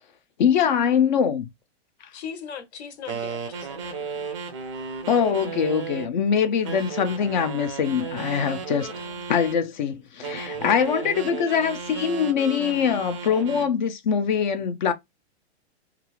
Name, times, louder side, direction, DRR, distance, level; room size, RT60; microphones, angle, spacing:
voice 1, 0.4-1.5 5.1-8.9 9.3-14.9, left 7 dB, 45° left, 0.4 m, -23 dB
voice 2, 2.1-4.3 8.7-9.2, left 7 dB, 75° left, 0.9 m, -40 dB
sound 1, 3.1-6.1 6.6-9.6 10.2-13.7, right 5 dB, 30° right, 0.4 m, -34 dB
2.4 x 2.3 x 2.9 m
supercardioid pair, 175°, 33 cm